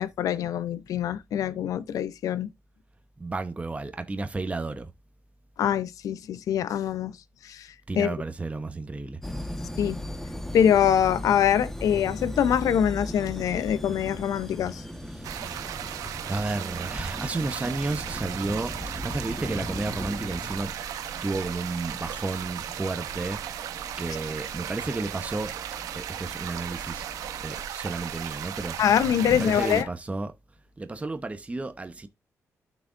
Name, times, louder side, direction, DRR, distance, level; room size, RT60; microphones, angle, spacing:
voice 1, 0.0-2.5 5.6-7.1 7.4-7.7 8.0-8.1 9.8-10.0 10.5-14.8 28.8-29.9, left 9 dB, 80° left, 0.7 m, -24 dB
voice 2, 3.2-4.9 7.9-9.2 15.1-15.8 16.3-18.7 19.0-20.8 21.2-23.4 24.0-25.5 25.9-27.0 27.4-28.8 29.3-30.3 30.8-32.1, right 2 dB, 25° right, 1.0 m, -32 dB
sound 1, 9.2-27.6, left 1 dB, 5° left, 1.4 m, -39 dB
sound 2, 15.2-29.8, right 10 dB, 90° right, 0.9 m, -36 dB
12.0 x 6.1 x 2.6 m
cardioid pair, 65°, 6 cm